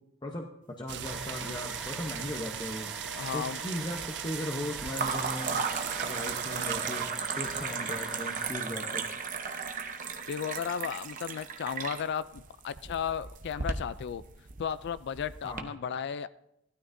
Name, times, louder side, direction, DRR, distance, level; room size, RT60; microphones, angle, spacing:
voice 1, 0.8-2.9 3.3-5.6 6.0-7.1 7.3-9.0 15.4-15.7, left 1 dB, 20° left, 1 dB, 0.9 m, -37 dB
sound 1, 0.9-7.1, right 12 dB, 60° right, 0.4 m, -39 dB
sound 2, 1.0-8.5, right 1 dB, 5° right, 2.1 m, -43 dB
sound 3, 1.8-2.5 2.8-3.5 4.9-15.6, right 5 dB, 40° right, 0.9 m, -36 dB
voice 2, 3.2-3.6 10.3-14.2 14.6-16.3, left 7 dB, 60° left, 16 dB, 0.3 m, -34 dB
16.5 x 12.5 x 2.6 m, 0.80 s
head